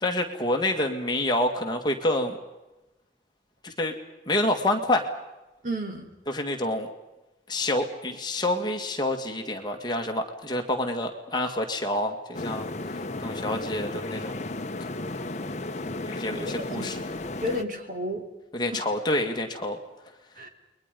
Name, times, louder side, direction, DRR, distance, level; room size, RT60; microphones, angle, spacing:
voice 1, 0.0-2.4 3.6-3.9 4.3-5.1 6.3-6.9 7.5-12.7 13.2-14.4 16.0-17.0 18.5-19.8, left 1 dB, 25° left, 3 dB, 2.1 m, -27 dB
voice 2, 5.6-6.1 16.3-16.9 17.4-18.2 18.7-18.9 20.4-20.5, equal, 45° right, 4 dB, 3.0 m, -32 dB
sound 1, 12.3-17.6, left 2 dB, 40° left, 1.0 m, -34 dB
29.5 x 22.5 x 5.3 m, 1.0 s
head